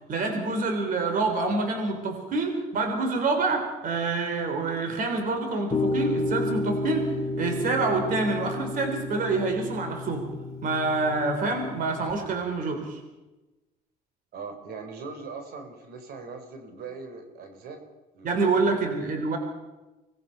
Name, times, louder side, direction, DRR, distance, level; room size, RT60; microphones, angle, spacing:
voice 1, 0.1-7.1 7.4-10.3 10.6-13.0 18.2-19.4, right 3 dB, 55° right, 5 dB, 3.5 m, -27 dB
sound 1, 5.7-12.1, left 2 dB, 25° left, 2.2 m, -31 dB
voice 2, 14.3-17.8 18.1-18.8, right 4 dB, 70° right, 6 dB, 3.9 m, -40 dB
25.5 x 19.5 x 5.7 m, 1.1 s
cardioid pair, 110°, 17 cm